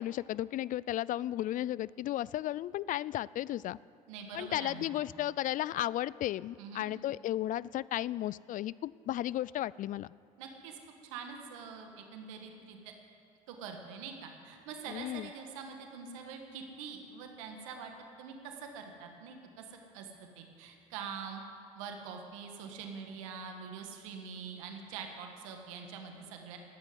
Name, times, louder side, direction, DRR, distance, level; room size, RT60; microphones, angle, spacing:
voice 1, 0.0-3.8 4.3-10.1 14.9-15.3, left 13 dB, 55° left, 21 dB, 0.4 m, -34 dB
voice 2, 4.1-4.9 6.6-6.9 10.4-12.8 13.5-17.9 18.2-20.1 20.3-21.4 21.7-26.6, right 6 dB, 85° right, 4 dB, 1.7 m, -44 dB
13.0 x 9.6 x 9.5 m, 2.6 s
hypercardioid pair, 70°, 17 cm